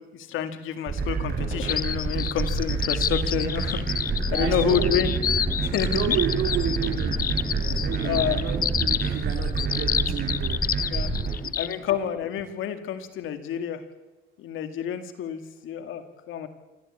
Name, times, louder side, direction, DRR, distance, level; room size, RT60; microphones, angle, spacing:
voice 1, 0.0-5.1 5.6-6.2 8.0-8.4 10.9-13.8 14.4-16.5, left 9 dB, 90° left, 2.1 m, -29 dB
sound 1, 0.9-11.3, right 4 dB, 55° right, 6.3 m, -27 dB
sound 2, 1.7-11.8, left 8 dB, 45° left, 0.8 m, -29 dB
sound 3, 4.0-9.1, right 1 dB, ahead, 5.5 m, -37 dB
voice 2, 4.3-5.0 5.3-5.4 5.9-10.7 11.2-11.6, right 8 dB, 85° right, 3.1 m, -31 dB
26.0 x 14.0 x 8.5 m
cardioid pair, 90°, 20 cm